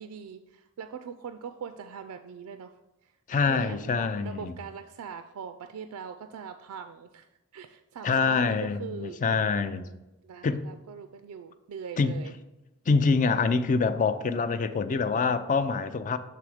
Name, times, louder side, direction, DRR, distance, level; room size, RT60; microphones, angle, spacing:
voice 1, 0.0-2.7 3.4-7.3 7.5-12.3, right 6 dB, 75° right, 0.4 m, -41 dB
voice 2, 3.3-4.5 8.0-9.9 10.4-10.6 12.0-12.1 12.9-16.2, left 4 dB, 35° left, 0.4 m, -25 dB
7.3 x 3.4 x 4.9 m
head